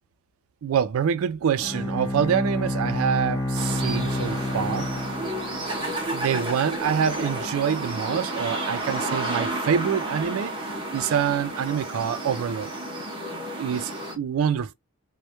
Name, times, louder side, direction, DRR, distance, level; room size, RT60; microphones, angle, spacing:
voice 1, 0.6-4.9 6.1-10.5 10.9-12.7 13.6-14.7, right 8 dB, 75° right, 0.3 m, -26 dB
Bowed string instrument, 1.6-6.0, left 1 dB, 15° left, 0.6 m, -29 dB
sound 1, 3.6-14.2, right 1 dB, 20° right, 0.7 m, -31 dB
2.2 x 2.0 x 2.8 m
head